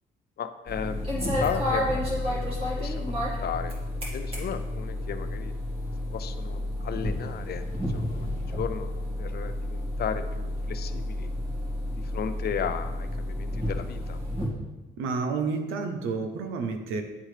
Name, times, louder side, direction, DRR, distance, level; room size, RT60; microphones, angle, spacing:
voice 1, 0.4-3.8 4.1-5.5 6.1-8.9 9.2-11.3 11.9-14.2, left 8 dB, 55° left, 10 dB, 0.5 m, -35 dB
sound 1, 0.7-14.5, left 1 dB, 30° right, 1.9 m, -31 dB
voice 2, 15.0-17.0, right 4 dB, 90° right, 6 dB, 0.7 m, -30 dB
9.5 x 3.6 x 3.3 m, 1.1 s
cardioid pair, 90°, 20 cm